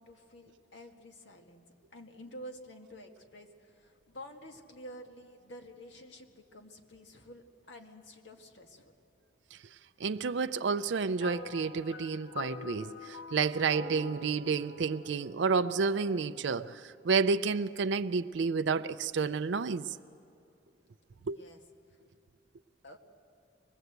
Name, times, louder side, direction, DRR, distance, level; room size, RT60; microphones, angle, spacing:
voice 1, 0.0-8.9 21.2-21.6 21.9-22.0 22.8-23.0, equal, 70° left, 1.9 m, -50 dB
voice 2, 10.0-19.9 21.3-21.4, right 5 dB, 70° right, 0.5 m, -30 dB
sound 1, 11.2-16.7, left 4 dB, 85° left, 1.4 m, -46 dB
25.0 x 20.0 x 8.1 m
head